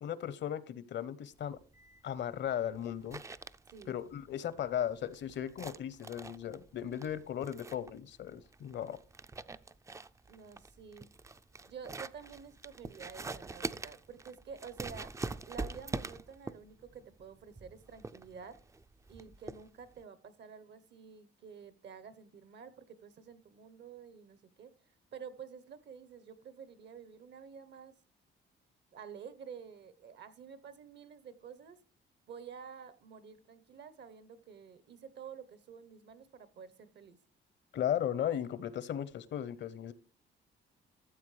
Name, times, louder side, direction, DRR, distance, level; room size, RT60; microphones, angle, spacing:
voice 1, 0.0-1.6 2.0-3.2 3.9-9.0 37.7-39.9, left 10 dB, 65° left, 16 dB, 0.8 m, -36 dB
sound 1, 1.4-20.0, right 3 dB, 15° right, 0.3 m, -45 dB
voice 2, 3.7-4.1 10.3-11.1 11.7-15.1 15.5-18.6 19.1-24.7 25.1-27.9 28.9-31.8 32.3-37.2, right 6 dB, 60° right, 15 dB, 0.9 m, -50 dB
13.5 x 7.3 x 3.2 m, 0.37 s
cardioid pair, 90°, 20 cm